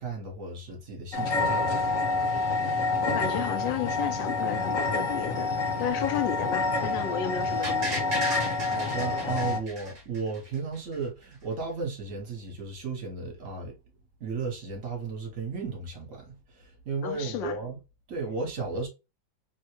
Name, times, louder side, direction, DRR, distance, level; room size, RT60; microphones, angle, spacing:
voice 1, 0.0-1.9 8.6-13.8 14.2-17.8 18.1-18.9, right 4 dB, 50° right, 1.2 m, -34 dB
sound 1, 1.1-9.6, left 3 dB, 55° left, 1.0 m, -28 dB
voice 2, 3.0-8.1 17.0-17.6, left 9 dB, 85° left, 1.3 m, -33 dB
sound 2, 7.6-10.6 10.9-11.0, right 1 dB, 25° right, 1.0 m, -35 dB
3.5 x 2.2 x 2.8 m
omnidirectional pair, 2.0 m